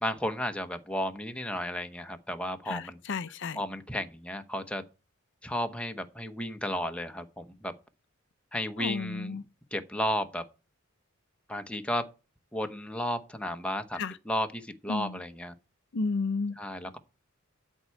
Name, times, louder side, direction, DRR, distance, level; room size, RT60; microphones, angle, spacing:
voice 1, 0.0-3.0 3.6-4.8 5.4-7.7 8.5-9.4 9.7-10.4 11.5-12.0 12.5-15.5 16.6-17.0, equal, 5° left, 0.9 m, -33 dB
voice 2, 2.7-3.6 8.8-9.4 13.9-14.2 14.9-15.2 15.9-16.6, left 4 dB, 60° left, 0.5 m, -32 dB
13.0 x 4.6 x 8.4 m
head